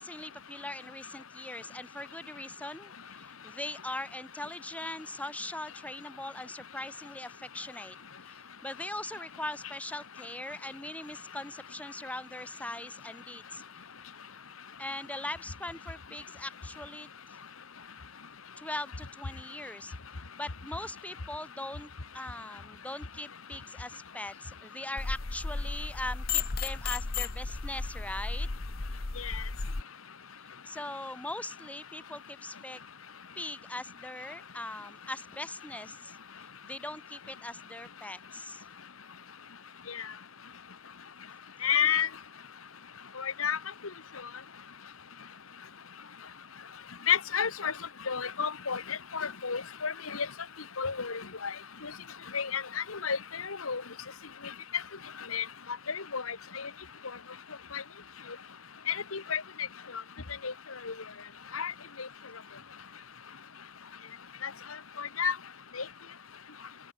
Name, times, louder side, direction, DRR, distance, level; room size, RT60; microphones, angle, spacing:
voice 1, 0.0-8.0 8.3-13.6 14.8-17.4 18.6-19.9 20.4-28.5 30.7-32.8 33.4-38.6, left 1 dB, 5° left, 3.6 m, -41 dB
sound 1, 25.0-29.8, left 4 dB, 45° left, 1.0 m, -34 dB
voice 2, 41.6-42.1 43.4-43.6 47.1-47.7 48.1-48.8 49.1-49.9 50.2-50.3 50.8-51.1 52.3-52.6 53.0-53.2 53.7-53.8 55.3-55.4 56.1-56.2 58.9-59.4 60.4-60.5 61.5-61.7 65.0-65.3, left 7 dB, 90° left, 1.6 m, -29 dB
open air
head